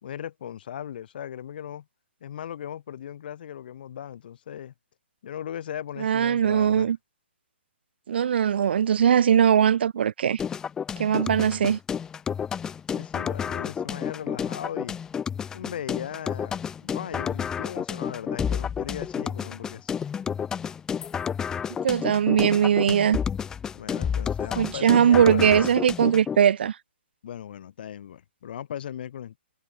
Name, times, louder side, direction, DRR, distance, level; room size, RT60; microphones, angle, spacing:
voice 1, 0.0-1.8 2.2-4.7 5.2-6.9 11.3-11.5 12.9-15.0 15.5-19.9 23.7-25.6 27.2-29.4, left 10 dB, 50° left, 2.4 m, -38 dB
voice 2, 6.0-7.0 8.1-10.4 11.0-11.8 21.8-23.2 24.6-26.8, right 8 dB, 60° right, 0.4 m, -20 dB
sound 1, 10.4-26.4, left 7 dB, 10° left, 0.6 m, -31 dB
hypercardioid pair, 150°, 6 cm